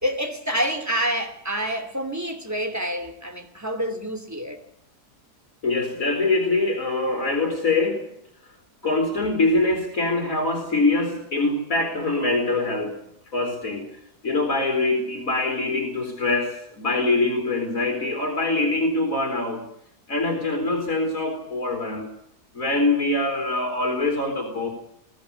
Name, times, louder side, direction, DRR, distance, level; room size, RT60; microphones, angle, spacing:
voice 1, 0.0-4.6, equal, 10° right, 2.8 m, -27 dB
voice 2, 5.6-8.1 8.8-13.0 13.3-13.9 14.2-19.6 20.1-22.1 22.5-24.7, left 2 dB, 55° left, 3.6 m, -24 dB
22.0 x 16.0 x 9.9 m
omnidirectional pair, 1.7 m